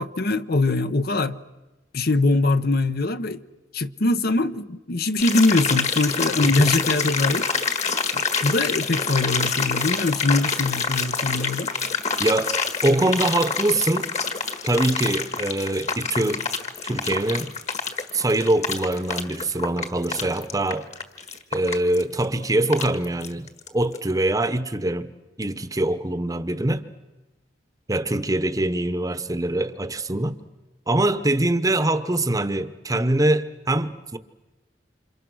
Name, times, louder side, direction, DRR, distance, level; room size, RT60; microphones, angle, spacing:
voice 1, 0.0-1.4 1.9-3.4 3.7-7.5 8.1-11.7, left 2 dB, 55° left, 0.9 m, -22 dB
sound 1, 5.2-23.7 23.9-24.0, left 5 dB, 40° left, 1.7 m, -27 dB
voice 2, 6.4-6.8 12.2-12.5 12.8-14.1 14.6-16.4 16.8-17.5 18.1-20.9 21.5-25.1 25.4-26.9 27.9-30.4 30.9-34.2, right 1 dB, 20° right, 1.0 m, -23 dB
29.0 x 27.0 x 6.3 m
head